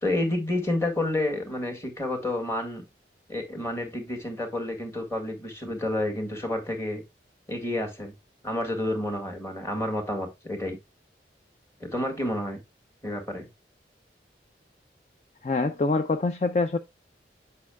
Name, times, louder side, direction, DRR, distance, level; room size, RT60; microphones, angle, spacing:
voice 1, 0.0-2.8 3.3-7.0 7.5-8.1 8.4-10.8 11.8-12.6 13.0-13.5, left 1 dB, 15° left, 1.7 m, -29 dB
voice 2, 15.4-16.8, left 3 dB, 40° left, 0.4 m, -25 dB
8.4 x 5.5 x 2.3 m
head